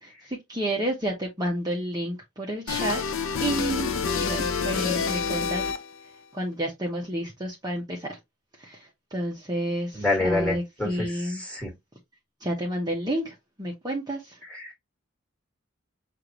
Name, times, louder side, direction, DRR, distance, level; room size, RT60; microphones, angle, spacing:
voice 1, 0.0-3.0 3.4-3.9 4.2-5.6 6.3-8.2 8.6-11.4 12.4-14.4, right 1 dB, 20° right, 0.9 m, -30 dB
sound 1, 2.7-6.1, left 6 dB, 85° left, 0.7 m, -28 dB
voice 2, 9.9-11.7 14.5-14.8, left 2 dB, 5° left, 1.9 m, -28 dB
6.5 x 2.6 x 3.0 m
head